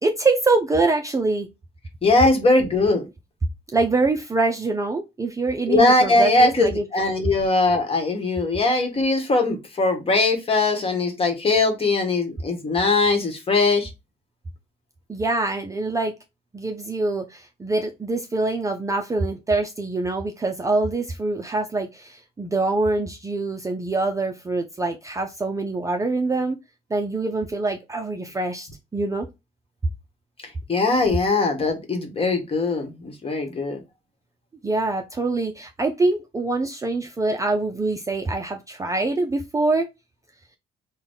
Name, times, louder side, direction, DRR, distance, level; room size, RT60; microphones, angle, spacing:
voice 1, 0.0-1.5 3.7-6.8 15.1-16.1 16.5-26.6 26.9-29.3 34.6-39.9, right 3 dB, 20° right, 0.5 m, -24 dB
voice 2, 2.0-3.1 5.7-13.9 30.7-33.8, left 3 dB, 30° left, 1.2 m, -20 dB
3.9 x 2.2 x 3.5 m
cardioid pair, 115°, 18 cm